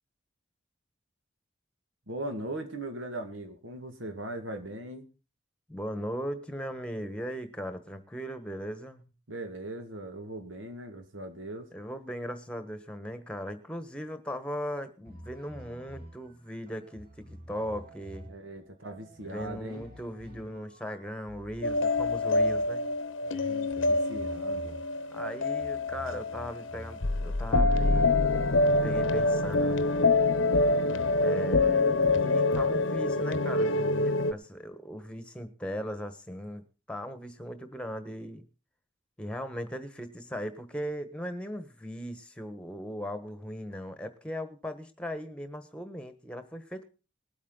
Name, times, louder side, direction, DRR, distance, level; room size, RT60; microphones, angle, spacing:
voice 1, 2.1-5.1 9.3-11.7 18.3-19.9 23.3-24.8, right 1 dB, 90° right, 7 dB, 2.0 m, -39 dB
voice 2, 5.7-9.1 11.7-18.3 19.2-22.9 25.1-28.3 28.6-29.9 31.2-31.9 32.2-36.6 36.9-38.5 39.2-46.8, equal, 5° left, 10 dB, 1.3 m, -38 dB
sound 1, 15.0-32.3, equal, 50° right, 2.4 m, -50 dB
sound 2, 21.6-34.3, left 2 dB, 90° left, 0.9 m, -26 dB
20.0 x 8.5 x 3.9 m, 0.33 s
head